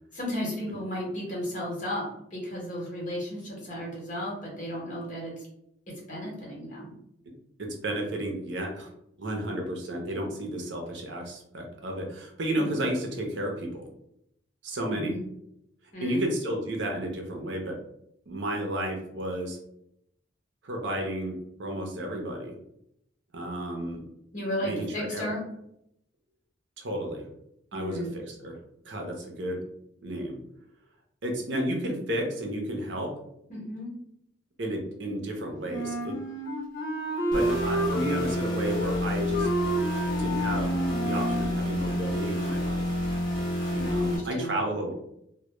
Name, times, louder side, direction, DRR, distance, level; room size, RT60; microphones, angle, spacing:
voice 1, 0.1-5.3 6.1-6.9 12.6-12.7 14.9-15.2 15.9-16.2 24.3-25.4 27.7-28.1 33.5-33.9 43.8-44.6, equal, 40° left, -4 dB, 1.0 m, -34 dB
voice 2, 7.6-8.9 9.2-13.9 14.6-15.2 16.0-17.8 18.3-19.6 20.6-22.6 23.3-24.0 24.6-25.3 26.8-27.3 27.7-28.6 28.8-29.6 30.0-30.4 31.2-33.2 34.6-36.2 37.3-39.5 40.2-40.7 41.0-42.9 43.7-44.9, right 1 dB, 80° right, 2 dB, 0.6 m, -32 dB
Wind instrument woodwind instrument, 35.7-41.5, equal, 80° left, 0.6 m, -30 dB
sound 1, 37.3-44.2, equal, 25° left, 0.6 m, -29 dB
2.1 x 2.1 x 2.9 m, 0.76 s
head